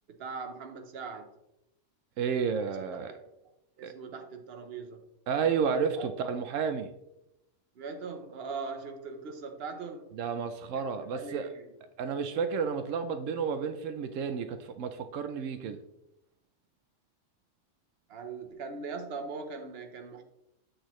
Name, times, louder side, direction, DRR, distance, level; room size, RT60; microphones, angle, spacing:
voice 1, 0.2-1.3 2.7-3.3 3.8-5.0 5.9-6.1 7.7-10.1 10.7-10.8 11.1-11.7 18.1-20.2, right 4 dB, 55° right, 5 dB, 1.1 m, -40 dB
voice 2, 2.2-3.1 3.8-3.9 5.3-6.9 10.2-11.5 12.0-15.8, right 6 dB, 85° right, 9 dB, 1.0 m, -31 dB
8.0 x 6.3 x 3.1 m, 0.86 s
omnidirectional pair, 1.3 m